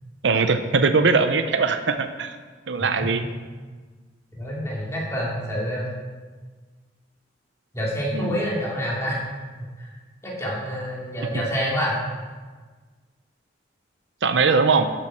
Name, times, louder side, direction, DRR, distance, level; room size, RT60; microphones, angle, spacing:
voice 1, 0.2-2.4 2.7-3.2 8.1-8.4 14.2-14.9, right 4 dB, 75° right, 9 dB, 0.6 m, -21 dB
voice 2, 4.4-5.9 7.7-9.3 9.8-9.9 10.2-12.0, equal, 15° left, -5 dB, 2.8 m, -27 dB
12.5 x 7.5 x 4.4 m, 1.4 s
head